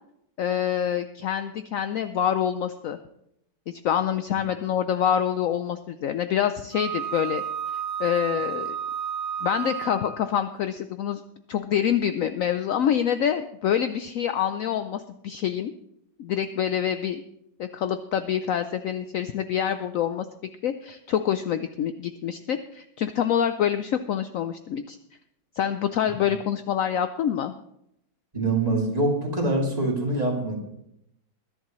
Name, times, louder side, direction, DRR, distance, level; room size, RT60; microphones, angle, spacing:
voice 1, 0.4-3.0 3.7-7.4 8.0-8.7 9.4-11.2 11.5-15.7 16.2-17.2 17.6-20.3 20.6-25.0 25.5-27.5, left 9 dB, 75° left, 10 dB, 0.7 m, -26 dB
Wind instrument woodwind instrument, 6.7-10.3, right 8 dB, 60° right, 1.9 m, -31 dB
voice 2, 28.3-30.6, right 2 dB, 20° right, -2 dB, 2.8 m, -24 dB
21.0 x 11.0 x 3.1 m, 0.77 s
omnidirectional pair, 2.0 m